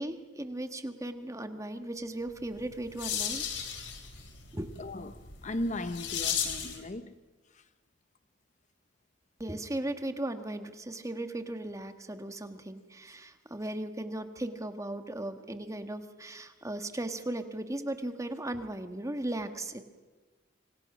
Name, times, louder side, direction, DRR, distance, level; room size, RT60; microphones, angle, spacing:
voice 1, 0.0-3.4 4.5-4.8 9.4-19.8, right 1 dB, 15° right, 1.5 m, -37 dB
sound 1, 2.4-6.9, left 8 dB, 70° left, 3.5 m, -36 dB
voice 2, 4.8-7.2 7.5-7.6, left 1 dB, 40° left, 0.9 m, -37 dB
27.5 x 26.0 x 6.1 m
head